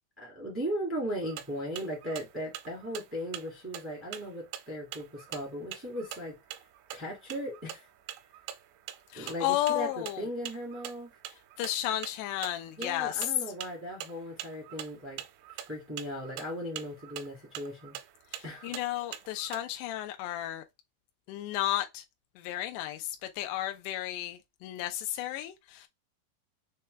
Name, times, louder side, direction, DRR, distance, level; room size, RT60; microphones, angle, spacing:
voice 1, 0.2-6.4 6.9-7.8 9.1-11.1 12.7-15.2 15.7-17.9 18.4-18.7, equal, 15° right, 0.4 m, -37 dB
sound 1, 1.2-19.6, right 12 dB, 85° right, 2.7 m, -45 dB
voice 2, 9.1-10.3 11.6-13.3 18.3-20.6 21.3-22.0 22.4-25.9, left 14 dB, 90° left, 2.7 m, -33 dB
6.6 x 2.2 x 3.2 m
omnidirectional pair, 4.8 m